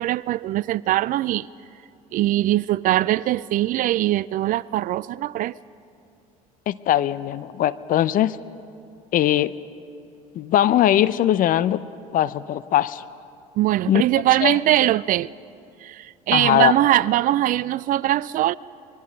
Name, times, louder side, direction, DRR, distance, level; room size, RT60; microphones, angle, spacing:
voice 1, 0.0-1.5 2.1-5.6 13.6-15.3 15.8-18.6, right 14 dB, 45° right, 0.4 m, -21 dB
voice 2, 6.7-8.4 9.1-9.5 10.3-11.9 12.1-13.0 13.9-14.0 14.4-14.6 16.3-16.7, left 12 dB, 45° left, 0.7 m, -20 dB
26.0 x 21.5 x 5.2 m
hypercardioid pair, 75°, 19 cm